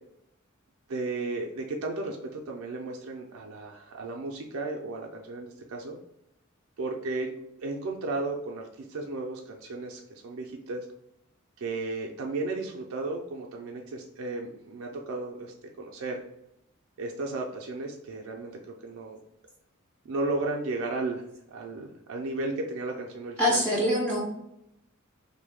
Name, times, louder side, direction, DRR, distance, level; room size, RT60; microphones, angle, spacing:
voice 1, 0.9-6.0 6.8-7.3 7.6-10.9 11.6-16.2 17.0-19.2 20.0-21.2 21.5-23.6, right 2 dB, 70° right, 0 dB, 0.4 m, -34 dB
voice 2, 23.4-24.2, equal, 5° left, -5 dB, 0.5 m, -24 dB
3.1 x 2.1 x 3.4 m, 0.81 s
head